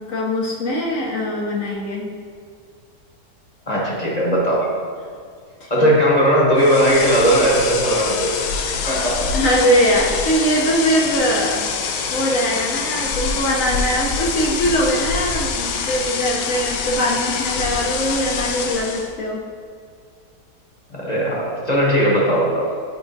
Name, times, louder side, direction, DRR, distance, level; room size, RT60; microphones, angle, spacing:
voice 1, 0.0-2.1 5.6-5.9 8.7-8.8 9.3-19.4, equal, 60° left, -2 dB, 0.9 m, -21 dB
voice 2, 3.7-4.7 5.7-8.3 8.9-9.3 20.9-22.7, equal, 30° left, -5 dB, 0.9 m, -18 dB
sound 1, 6.6-19.1, left 5 dB, 80° left, 1.2 m, -25 dB
7.9 x 4.8 x 2.6 m, 2.1 s
omnidirectional pair, 1.8 m